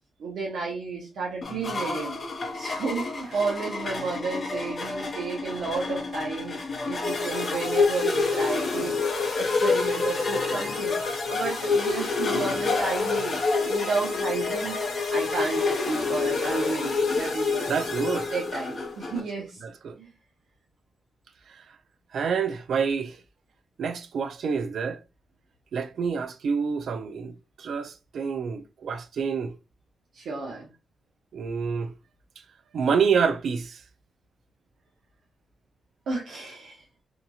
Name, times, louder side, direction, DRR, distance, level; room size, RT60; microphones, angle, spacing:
voice 1, 0.2-2.2 2.5-6.6 6.8-9.0 9.4-11.0 11.3-14.8 15.1-17.7 18.3-19.6 20.0-20.1 30.1-30.7 36.1-36.8, right 4 dB, 75° right, 0.7 m, -32 dB
sound 1, 1.4-19.2, left 3 dB, 35° left, 0.5 m, -33 dB
sound 2, 7.0-18.9, left 4 dB, 60° left, 0.8 m, -28 dB
voice 2, 17.7-18.3 19.1-20.0 21.5-21.6 22.1-23.2 23.8-25.0 25.7-29.6 31.3-31.9 32.7-33.8, right 6 dB, 60° right, 0.3 m, -28 dB
2.8 x 2.7 x 2.3 m
wide cardioid pair, 175°, 0 cm